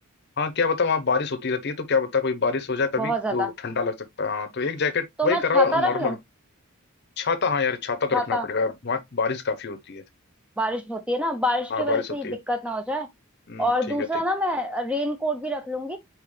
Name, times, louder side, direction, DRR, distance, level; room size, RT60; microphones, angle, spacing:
voice 1, 0.4-6.2 7.2-10.0 11.7-12.4 13.5-14.1, left 4 dB, 50° left, 0.7 m, -26 dB
voice 2, 3.0-3.5 5.2-6.2 8.1-8.5 10.6-13.1 13.6-16.0, equal, 5° right, 0.5 m, -26 dB
4.6 x 3.6 x 3.1 m
head